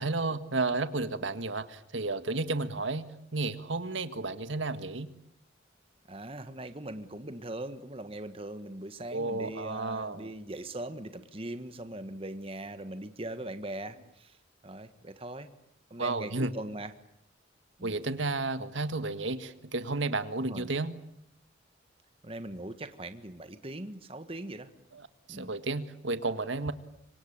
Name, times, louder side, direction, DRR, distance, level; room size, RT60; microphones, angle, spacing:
voice 1, 0.0-5.1 9.1-10.3 16.0-16.5 17.8-21.0 24.9-26.7, right 3 dB, 80° right, 11 dB, 1.7 m, -32 dB
voice 2, 6.1-14.3 14.6-15.5 15.9-16.9 17.8-18.0 20.4-20.7 22.2-24.7 25.3-25.5, right 1 dB, 30° right, 9 dB, 1.5 m, -40 dB
26.5 x 25.0 x 8.8 m, 0.76 s
head